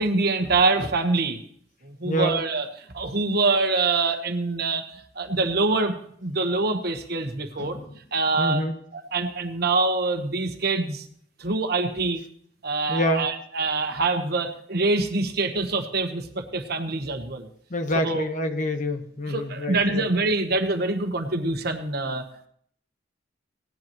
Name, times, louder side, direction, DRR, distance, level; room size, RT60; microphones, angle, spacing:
voice 1, 0.0-1.4 1.8-2.7 2.9-4.8 5.1-7.8 8.1-8.6 8.9-11.0 11.4-12.2 12.6-17.5 18.0-18.3 19.3-22.5, right 3 dB, 60° right, 6 dB, 1.2 m, -25 dB
voice 2, 2.0-2.4 7.6-7.9 8.4-8.7 12.9-13.3 17.7-20.1, equal, 45° left, 5 dB, 1.1 m, -27 dB
18.0 x 10.5 x 3.0 m, 0.62 s
head